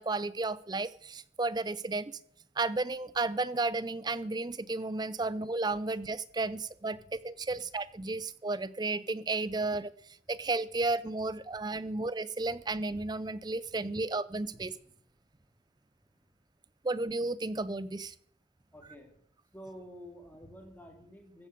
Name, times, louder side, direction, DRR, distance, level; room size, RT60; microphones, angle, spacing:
voice 1, 0.0-2.2 2.6-9.9 10.3-14.7 16.8-18.1, right 3 dB, 20° right, 17 dB, 0.5 m, -33 dB
voice 2, 18.7-19.1 19.5-21.5, equal, 10° left, 3 dB, 2.4 m, -49 dB
15.0 x 7.4 x 6.8 m, 0.64 s
head